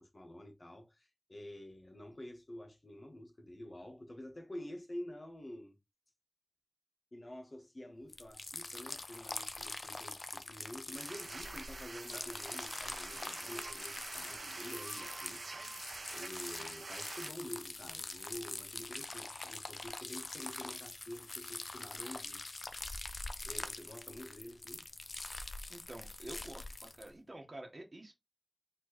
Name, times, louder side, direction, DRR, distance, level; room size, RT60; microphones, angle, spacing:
voice 1, 0.0-5.8 7.1-22.4 23.4-24.9, left 1 dB, 45° left, 1.2 m, -49 dB
sound 1, 8.1-27.1, left 2 dB, 60° left, 0.5 m, -44 dB
sound 2, 10.9-17.3, right 3 dB, 85° right, 0.6 m, -46 dB
voice 2, 25.7-28.1, right 1 dB, 45° right, 1.2 m, -49 dB
4.4 x 2.9 x 3.0 m
wide cardioid pair, 65°, 0 cm